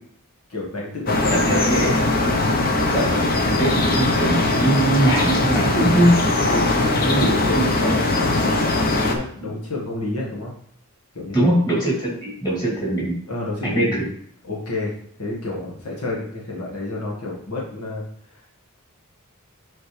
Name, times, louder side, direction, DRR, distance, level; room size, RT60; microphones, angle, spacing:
voice 1, 0.5-1.9 2.2-2.6 3.6-3.7 6.5-10.5 11.1-11.6 13.3-14.0 14.4-14.9 15.2-18.5, left 2 dB, 80° left, -3 dB, 1.7 m, -29 dB
sound 1, 1.1-9.2, left 2 dB, 40° left, 0.8 m, -20 dB
voice 2, 1.3-1.9 2.9-6.1 7.0-7.3 7.5-7.9 11.3-13.2 13.6-14.0, right 1 dB, 20° left, -6 dB, 3.0 m, -21 dB
7.7 x 4.4 x 3.3 m, 0.64 s
head